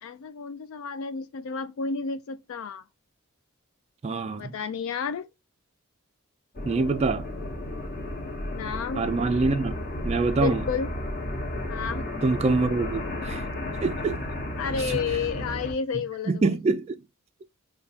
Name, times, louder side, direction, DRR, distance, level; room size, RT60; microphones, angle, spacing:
voice 1, 0.0-2.8 4.4-5.3 8.5-9.0 10.4-10.9 11.7-12.1 14.6-16.5, left 6 dB, 70° left, 0.3 m, -31 dB
voice 2, 4.0-4.5 6.7-7.3 9.0-10.7 12.2-13.4 13.8-14.2 14.8-14.9 16.3-17.0, right 3 dB, 30° right, 0.3 m, -25 dB
sound 1, 6.5-15.7, left 1 dB, 45° left, 1.4 m, -33 dB
6.7 x 2.3 x 2.7 m
head